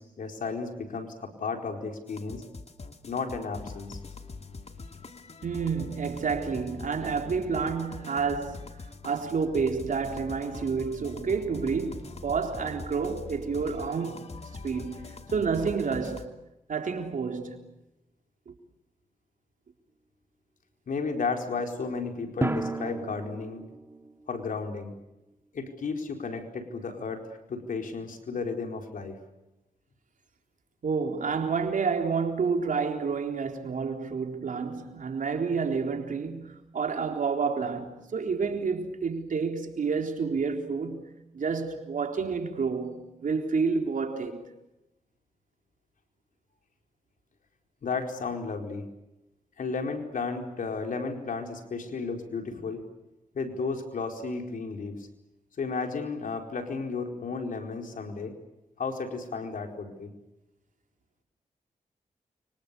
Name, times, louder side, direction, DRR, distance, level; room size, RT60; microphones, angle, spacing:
voice 1, 0.0-2.4 3.1-4.0 20.9-23.6 24.3-24.9 25.5-29.2 47.8-48.9 49.6-52.8 53.3-55.1 55.6-58.3 58.8-60.1, left 4 dB, 75° left, 4.5 m, -33 dB
sound 1, 2.1-16.3, left 3 dB, 50° left, 2.7 m, -43 dB
voice 2, 5.4-14.3 14.6-16.3 16.7-17.6 18.5-18.6 30.8-44.6, right 5 dB, 70° right, 3.9 m, -29 dB
Drum, 22.4-24.7, right 2 dB, 15° right, 2.9 m, -33 dB
29.5 x 25.5 x 6.9 m
cardioid pair, 50°, 14 cm